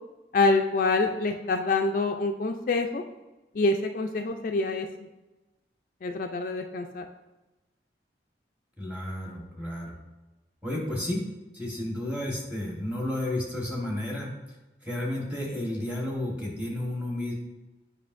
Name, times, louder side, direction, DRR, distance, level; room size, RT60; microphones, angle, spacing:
voice 1, 0.3-3.0 3.5-4.9 6.0-7.1, left 3 dB, 50° left, 4 dB, 0.3 m, -26 dB
voice 2, 8.8-9.9 10.6-11.2 11.5-14.3 14.8-17.3, left 1 dB, 10° right, -3 dB, 1.3 m, -32 dB
8.4 x 5.1 x 2.5 m, 1.1 s
head